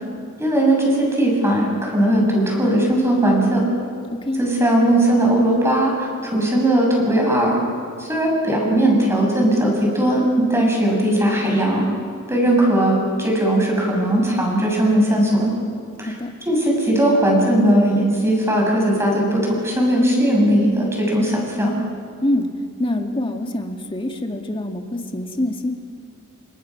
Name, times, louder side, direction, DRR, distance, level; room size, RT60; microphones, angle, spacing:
voice 1, 0.4-3.7 4.4-7.6 8.0-11.8 12.3-15.6 16.0-16.1 16.5-21.7, right 1 dB, 15° right, -1 dB, 7.0 m, -18 dB
voice 2, 4.1-4.4 16.0-16.3 22.2-22.5 22.8-25.7, left 1 dB, 25° left, 3 dB, 2.0 m, -25 dB
30.0 x 25.5 x 6.0 m, 2.3 s
head